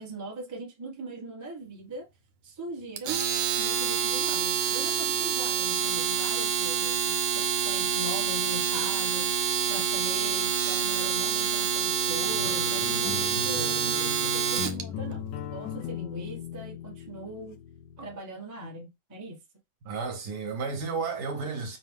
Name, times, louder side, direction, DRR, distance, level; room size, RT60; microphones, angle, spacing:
voice 1, 0.0-2.1 2.4-3.2 3.6-9.3 9.7-17.6 18.0-19.4, right 2 dB, 15° right, 0.6 m, -40 dB
Domestic sounds home sounds, 3.0-14.8, right 7 dB, 90° right, 1.5 m, -27 dB
sound 1, 12.3-18.2, left 9 dB, 75° left, 1.1 m, -38 dB
voice 2, 19.8-21.8, right 4 dB, 60° right, 1.5 m, -32 dB
5.0 x 2.2 x 3.6 m
omnidirectional pair, 2.1 m